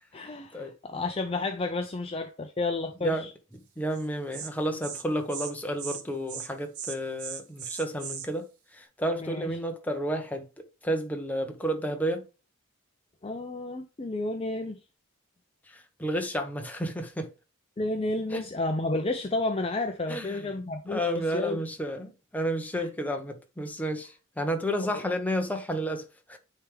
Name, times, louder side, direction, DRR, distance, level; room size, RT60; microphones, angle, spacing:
voice 1, 0.1-3.3 9.2-9.5 13.2-14.8 17.8-21.6 22.7-22.9 24.8-25.0, left 2 dB, 25° left, 0.5 m, -31 dB
voice 2, 3.8-8.5 8.7-12.2 15.7-17.3 18.3-18.4 20.1-20.5 20.9-26.4, equal, 5° left, 0.9 m, -31 dB
Insect, 3.9-4.1 4.3-4.5 4.8-5.0 5.3-5.5 5.8-6.0 6.3-6.5 6.7-8.3, right 8 dB, 75° right, 1.1 m, -37 dB
9.1 x 3.5 x 3.4 m
head